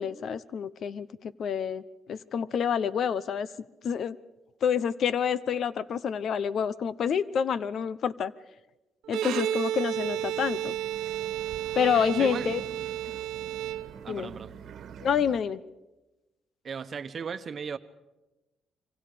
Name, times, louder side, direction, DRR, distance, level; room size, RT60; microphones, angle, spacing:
voice 1, 0.0-1.8 2.1-3.5 3.8-4.2 4.6-8.3 9.1-10.7 11.7-12.6 14.1-14.3 15.0-15.6, left 7 dB, 60° left, 0.8 m, -28 dB
Bowed string instrument, 9.0-14.3, right 12 dB, 90° right, 1.0 m, -32 dB
sound 1, 9.9-15.4, right 7 dB, 70° right, 1.4 m, -46 dB
voice 2, 11.8-12.5 14.0-14.5 16.6-17.8, right 6 dB, 50° right, 1.1 m, -37 dB
26.5 x 24.5 x 5.1 m
cardioid pair, 90°, 0 cm